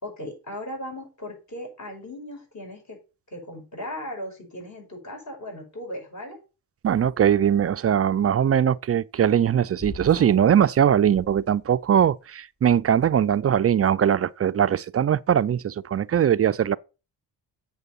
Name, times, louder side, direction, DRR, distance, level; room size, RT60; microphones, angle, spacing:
voice 1, 0.0-3.0 3.3-6.4, left 1 dB, 40° left, 6.2 m, -37 dB
voice 2, 6.8-16.8, right 9 dB, 35° right, 0.4 m, -21 dB
sound 1, 9.8-10.5 11.1-12.0, left 1 dB, 25° left, 1.5 m, -40 dB
8.1 x 6.9 x 5.4 m
cardioid pair, 90°, 41 cm